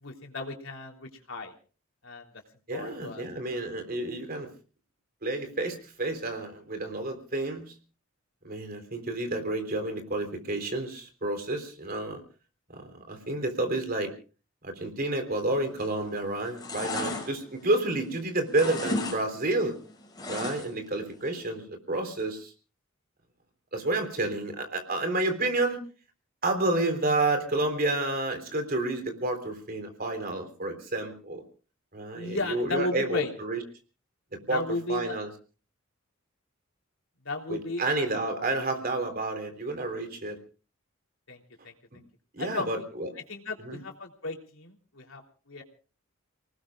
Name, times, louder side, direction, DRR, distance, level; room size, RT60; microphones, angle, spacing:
voice 1, 0.0-1.5 2.0-2.3 2.7-3.2 32.1-33.3 34.5-35.2 37.2-38.1 41.3-41.7 42.4-42.8 43.3-45.6, left 2 dB, 75° left, 2 dB, 3.4 m, -35 dB
voice 2, 2.7-4.5 5.2-7.7 8.4-12.2 12.7-14.1 14.6-19.8 20.3-22.5 23.7-25.8 26.4-31.4 31.9-33.6 34.5-34.6 34.9-35.3 37.5-40.4 41.9-42.0 42.3-43.1 43.6-43.8, right 2 dB, 45° right, 6 dB, 3.8 m, -30 dB
sound 1, 15.7-16.1 16.4-18.2 18.5-19.2 19.5-20.9 21.2-21.3, left 2 dB, 20° left, 6.4 m, -34 dB
30.0 x 19.5 x 2.4 m, 0.37 s
head